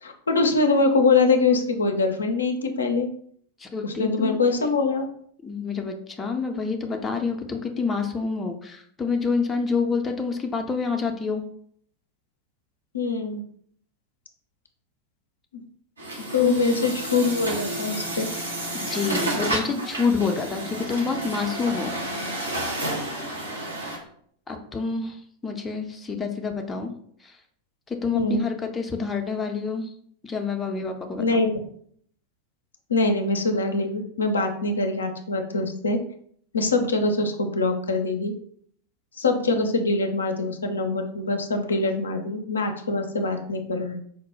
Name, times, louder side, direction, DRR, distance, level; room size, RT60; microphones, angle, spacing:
voice 1, 0.0-3.1 3.8-5.1 12.9-13.4 16.3-18.3 18.8-19.0 28.1-28.4 31.2-31.5 32.9-36.0 36.5-38.3 39.2-44.0, left 3 dB, 75° left, 5 dB, 0.4 m, -23 dB
voice 2, 3.6-4.7 5.4-11.4 16.4-16.6 18.7-21.9 24.5-25.2 25.4-26.9 27.9-29.9 30.2-31.4, left 4 dB, 15° left, 3 dB, 0.4 m, -27 dB
Truck, 16.0-24.0, right 1 dB, 75° right, 0.8 m, -31 dB
4.3 x 2.1 x 3.1 m, 0.63 s
figure-of-eight pair, 90°, 0 cm